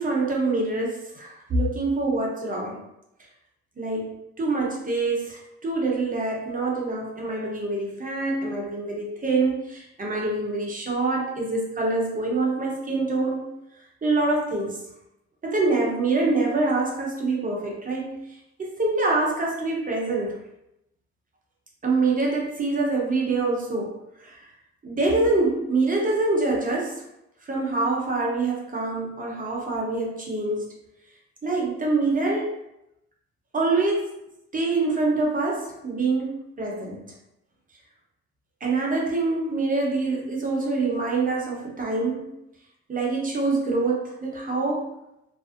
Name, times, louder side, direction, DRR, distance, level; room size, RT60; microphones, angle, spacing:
voice 1, 0.0-2.8 3.8-13.5 14.0-14.9 15.4-18.2 18.8-20.4 21.8-24.5 24.8-27.0 27.5-30.7 31.4-32.5 33.5-34.2 34.5-37.1 38.6-42.3 42.9-44.9, right 3 dB, 25° right, -3 dB, 0.7 m, -25 dB
2.5 x 2.0 x 2.4 m, 0.85 s
cardioid pair, 90°, 30 cm